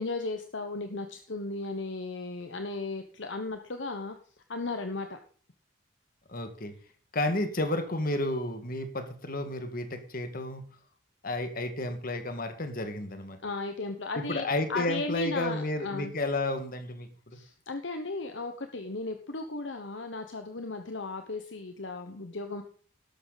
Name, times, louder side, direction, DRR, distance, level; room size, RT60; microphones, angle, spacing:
voice 1, 0.0-4.2 4.5-5.2 13.4-16.1 17.3-22.6, left 3 dB, 60° left, 6 dB, 1.1 m, -35 dB
voice 2, 6.3-6.7 7.1-10.6 11.2-13.4 14.2-17.1, left 1 dB, 45° left, 7 dB, 1.9 m, -31 dB
12.5 x 11.5 x 4.0 m, 0.43 s
head